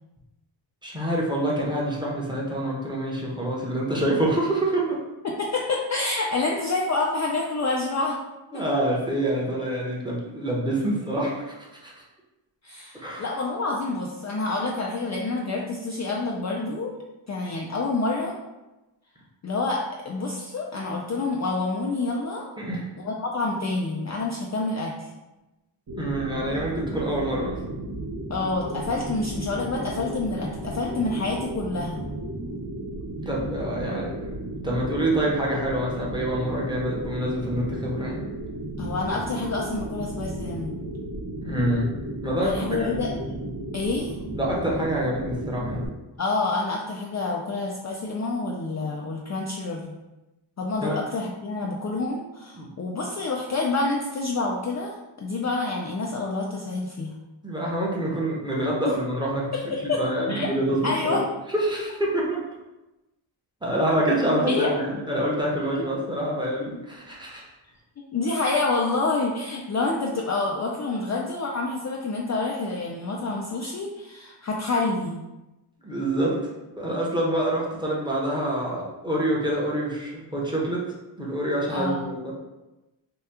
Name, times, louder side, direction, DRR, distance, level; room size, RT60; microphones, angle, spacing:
voice 1, 0.8-5.0 8.5-11.9 12.9-13.2 22.6-22.8 26.0-27.6 33.3-34.3 34.6-38.2 41.4-41.9 42.2-43.1 44.3-45.9 50.8-51.0 52.6-52.7 57.4-61.2 61.5-62.4 63.6-67.4 75.8-76.4 76.8-80.9 81.2-82.3, right 1 dB, 10° right, -4 dB, 0.8 m, -26 dB
voice 2, 5.2-8.2 12.6-17.0 17.3-18.3 19.4-22.4 23.0-25.1 28.3-32.1 38.8-40.8 42.4-43.1 43.7-44.2 46.2-50.0 50.6-57.2 58.8-58.9 59.5-60.0 60.3-60.5 60.8-61.2 64.5-64.7 68.1-75.2 81.7-82.1, left 3 dB, 40° left, -2 dB, 0.4 m, -28 dB
sound 1, 25.9-45.9, right 1 dB, 45° right, 0.9 m, -34 dB
2.8 x 2.3 x 3.4 m, 1.0 s
cardioid pair, 75°, 49 cm